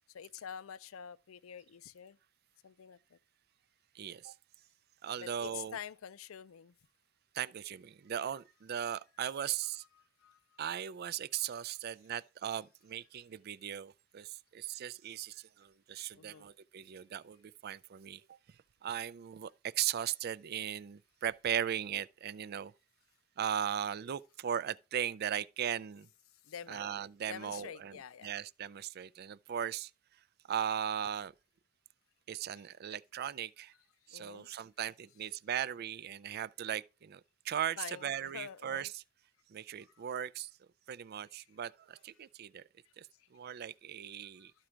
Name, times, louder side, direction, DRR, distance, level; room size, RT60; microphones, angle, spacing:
voice 1, 0.1-2.2 2.6-3.2 5.2-6.7 9.9-10.6 16.2-16.5 26.4-26.9 27.3-28.3 32.5-32.6 34.0-34.5 37.8-38.9 39.9-40.0 42.8-42.9 43.2-43.3 44.4-44.5, left 8 dB, 80° left, 0.5 m, -47 dB
voice 2, 4.0-4.3 5.0-5.8 7.3-9.8 10.6-18.4 18.8-22.7 23.4-26.1 26.7-28.0 28.2-29.9 30.5-31.3 32.3-33.7 34.1-39.0 39.5-40.5 40.9-42.6 43.0-44.5, right 9 dB, 50° right, 0.4 m, -38 dB
12.5 x 4.4 x 5.0 m
head